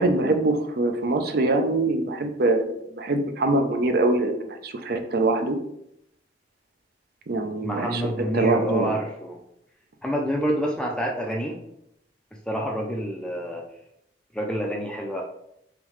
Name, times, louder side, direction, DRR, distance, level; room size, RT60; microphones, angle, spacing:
voice 1, 0.0-5.6 7.3-8.0 8.3-9.0, right 2 dB, 60° right, 6 dB, 0.5 m, -23 dB
voice 2, 7.6-9.4 10.0-11.6 12.5-13.6 14.3-15.2, equal, 5° left, -1 dB, 0.4 m, -27 dB
3.6 x 3.4 x 3.2 m, 0.76 s
head